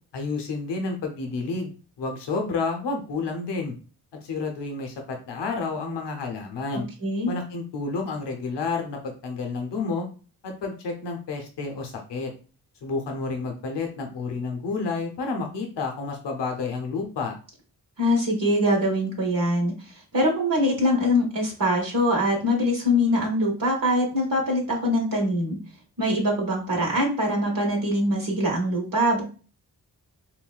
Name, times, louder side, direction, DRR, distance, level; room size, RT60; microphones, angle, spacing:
voice 1, 0.1-1.7 2.0-3.7 4.2-6.9 7.3-10.1 10.4-12.3 12.8-17.4, left 4 dB, 85° left, 3 dB, 0.7 m, -30 dB
voice 2, 18.0-19.7 20.1-25.6 26.0-29.2, equal, 55° right, 0 dB, 1.1 m, -23 dB
3.9 x 2.1 x 2.3 m, 0.36 s
cardioid pair, 45°, 41 cm